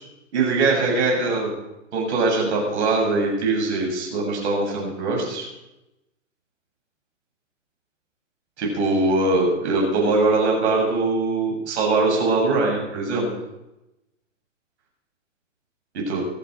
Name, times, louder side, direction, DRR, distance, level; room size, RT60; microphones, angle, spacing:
voice 1, 0.3-1.5 1.9-5.5 8.6-13.3 15.9-16.2, right 3 dB, 60° right, -1 dB, 7.8 m, -22 dB
25.5 x 9.4 x 5.1 m, 0.94 s
hypercardioid pair, 125°, 38 cm